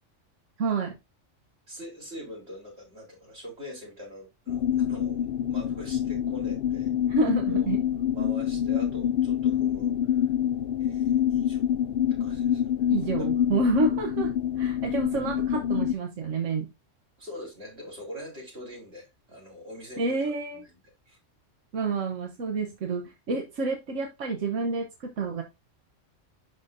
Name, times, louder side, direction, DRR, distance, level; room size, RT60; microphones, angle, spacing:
voice 1, 0.6-0.9 7.2-7.8 12.9-14.3 14.6-16.7 20.0-20.6 21.7-25.4, right 3 dB, 85° right, 4 dB, 1.4 m, -28 dB
voice 2, 1.7-6.9 7.5-7.6 8.1-10.2 10.8-11.7 12.2-12.9 13.2-13.4 17.2-20.2 20.5-20.8 21.1-21.2, equal, 60° right, -2 dB, 4.5 m, -43 dB
sound 1, 4.5-15.9, left 10 dB, 60° left, 0.7 m, -26 dB
11.0 x 4.4 x 2.6 m, 0.23 s
omnidirectional pair, 1.3 m